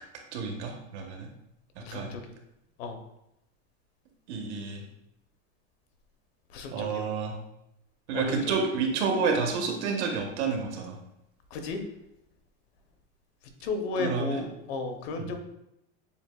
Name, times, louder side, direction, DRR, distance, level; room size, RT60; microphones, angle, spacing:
voice 1, 0.3-1.3 1.8-2.2 4.3-4.8 6.7-7.3 8.1-11.0 14.0-14.5 15.1-15.3, right 5 dB, 65° right, 3 dB, 0.9 m, -30 dB
voice 2, 1.8-2.2 2.8-3.0 6.5-7.1 8.1-8.3 11.5-11.8 13.6-15.4, left 4 dB, 55° left, 5 dB, 0.7 m, -33 dB
6.9 x 2.4 x 2.2 m, 0.83 s
supercardioid pair, 165°, 37 cm